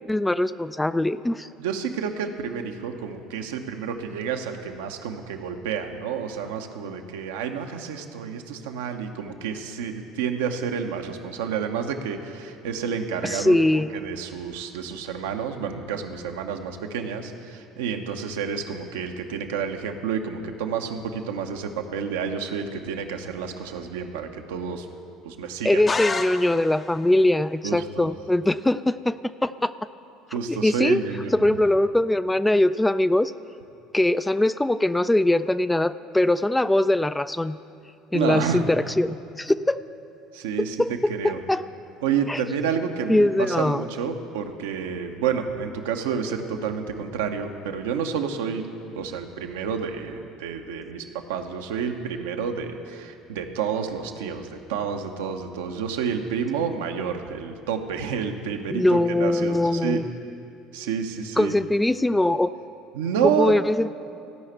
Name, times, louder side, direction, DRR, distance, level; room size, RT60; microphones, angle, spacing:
voice 1, 0.1-1.5 13.2-13.9 25.6-29.7 30.5-31.0 31.3-33.3 33.9-37.6 38.1-39.8 40.8-40.9 41.2-41.6 42.3-42.4 43.1-43.9 58.7-60.1 61.4-62.5 63.4-63.9, left 1 dB, 10° left, 14 dB, 0.3 m, -22 dB
voice 2, 1.6-13.6 13.9-24.9 25.2-25.8 27.6-28.1 30.3-31.6 38.1-38.6 40.3-41.4 42.0-48.6 48.9-60.0 60.7-61.5 62.9-63.5, right 7 dB, 75° right, 5 dB, 0.8 m, -29 dB
sound 1, 25.9-26.9, left 3 dB, 30° left, 0.7 m, -28 dB
15.5 x 5.6 x 8.0 m, 2.6 s
hypercardioid pair, 65°, 0 cm